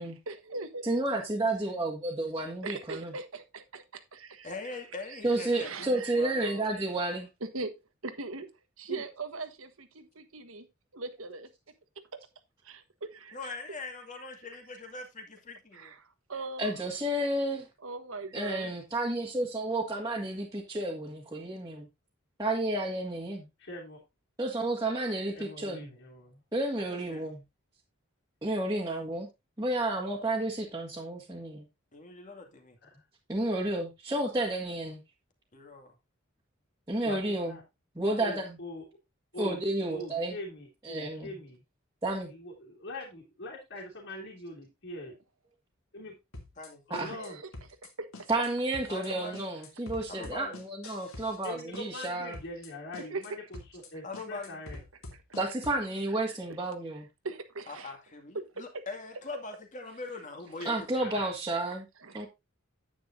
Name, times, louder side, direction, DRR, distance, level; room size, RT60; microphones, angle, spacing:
voice 1, 0.0-0.9 2.6-4.8 5.1-6.9 7.4-7.8 8.0-8.5 8.8-10.7 10.9-11.5 12.1-12.2 12.6-13.6 15.7-16.7 17.8-18.7 47.1-47.5 47.8-48.1 53.1-53.5 56.2-56.4 57.2-58.0 58.3-58.8 59.3-59.4 61.7-62.3, right 3 dB, 80° right, 1.4 m, -40 dB
voice 2, 0.8-3.1 5.2-7.3 16.6-17.6 18.3-21.9 22.4-23.5 24.4-25.9 26.5-27.4 28.4-29.3 29.6-31.7 33.3-35.0 36.9-37.6 38.0-38.6 39.4-40.4 40.8-41.3 42.0-42.3 46.9-47.1 48.3-52.4 55.4-57.1 60.7-61.9 62.1-62.3, right 2 dB, 20° right, 1.9 m, -31 dB
voice 3, 4.4-6.7 8.9-9.0 13.3-15.9 26.7-27.3 31.9-32.8 35.5-35.9 46.6-46.8 48.9-49.5 50.1-50.6 54.0-54.6 57.7-60.9, left 3 dB, 40° left, 2.3 m, -42 dB
voice 4, 23.6-24.0 25.3-26.4 32.8-33.0 37.0-37.2 37.4-37.6 38.2-38.8 39.3-39.6 39.9-41.6 42.3-45.2 45.9-46.1 46.9-47.4 50.1-50.3 51.4-54.8 61.0-61.3, left 1 dB, 60° left, 2.9 m, -43 dB
sound 1, 46.3-46.7 46.9-47.3 47.5-47.9 48.1-48.5 48.7-49.1 49.3-51.5 51.7-52.1 52.3-52.7 52.9-53.3 53.5-53.9 54.1-55.8, left 2 dB, 90° left, 2.8 m, -45 dB
9.8 x 9.4 x 2.7 m
head